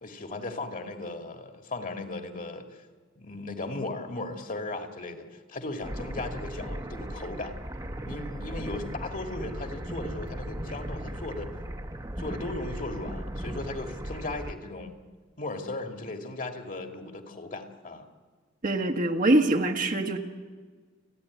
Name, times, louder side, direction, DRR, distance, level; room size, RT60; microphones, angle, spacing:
voice 1, 0.0-2.7 3.2-7.6 8.0-11.5 12.2-14.9 15.4-18.1, left 2 dB, 45° left, 5 dB, 1.9 m, -37 dB
sound 1, 5.8-14.5, right 1 dB, 20° right, 1.1 m, -37 dB
voice 2, 18.6-20.2, right 1 dB, 45° right, 4 dB, 1.5 m, -24 dB
29.0 x 10.5 x 9.5 m, 1.5 s
head